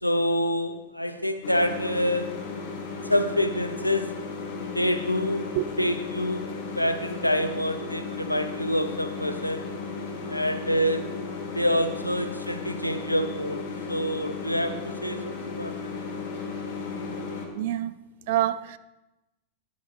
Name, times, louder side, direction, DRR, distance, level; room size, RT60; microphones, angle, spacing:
voice 1, 0.0-2.4 3.1-4.2 4.7-9.7 10.3-11.1 11.5-15.9, equal, 90° left, 0.5 m, -27 dB
sound 1, 1.4-17.5, left 4 dB, 50° left, 1.2 m, -35 dB
voice 2, 17.5-17.9 18.3-18.8, right 13 dB, 50° right, 0.3 m, -26 dB
9.7 x 7.3 x 2.9 m
figure-of-eight pair, 90°, 0 cm